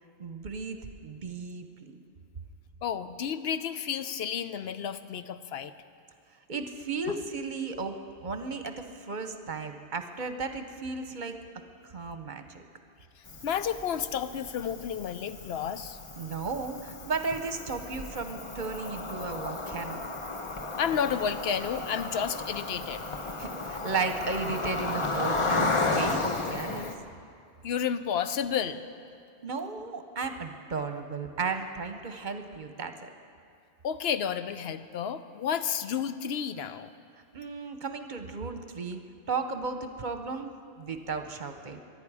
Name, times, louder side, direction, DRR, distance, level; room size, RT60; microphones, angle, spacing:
voice 1, 0.2-0.8 1.0-2.0 6.5-11.4 11.8-12.6 16.2-20.0 23.4-26.9 29.4-33.1 37.3-39.0 39.3-40.5 40.8-41.8, right 4 dB, 50° right, 7 dB, 1.0 m, -35 dB
voice 2, 2.8-5.7 13.4-16.0 20.8-23.0 27.6-28.8 33.8-36.9, left 8 dB, 80° left, 11 dB, 0.9 m, -31 dB
Cricket, 13.3-26.9, left 3 dB, 30° left, 0.8 m, -33 dB
23.0 x 11.0 x 4.8 m, 2.4 s
omnidirectional pair, 1.0 m